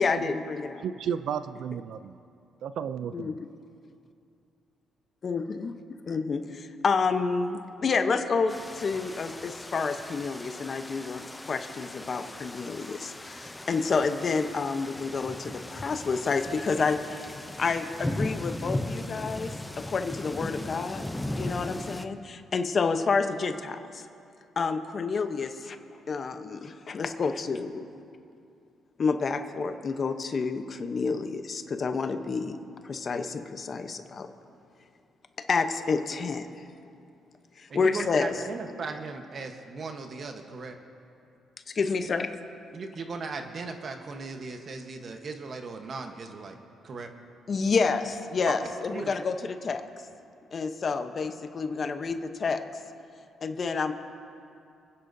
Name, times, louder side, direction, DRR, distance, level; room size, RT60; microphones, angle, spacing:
voice 1, 0.0-0.8 3.1-3.3 5.2-5.8 6.1-17.3 17.6-21.0 21.3-24.1 24.6-25.8 26.1-27.8 29.0-32.6 32.8-34.3 35.5-36.6 37.6-38.3 41.7-42.3 47.5-49.8 50.5-52.6 53.4-53.9, left 4 dB, 45° left, 8 dB, 0.9 m, -29 dB
voice 2, 0.8-2.2 2.6-3.3, right 8 dB, 70° right, 13 dB, 0.3 m, -33 dB
sound 1, 8.5-22.1, left 1 dB, 10° left, 0.6 m, -37 dB
voice 3, 37.7-40.8 42.7-46.6 46.8-47.1 48.4-48.5 48.9-49.1, right 4 dB, 50° right, 5 dB, 1.1 m, -37 dB
29.0 x 10.0 x 2.7 m, 2.6 s
cardioid pair, 90°, 0 cm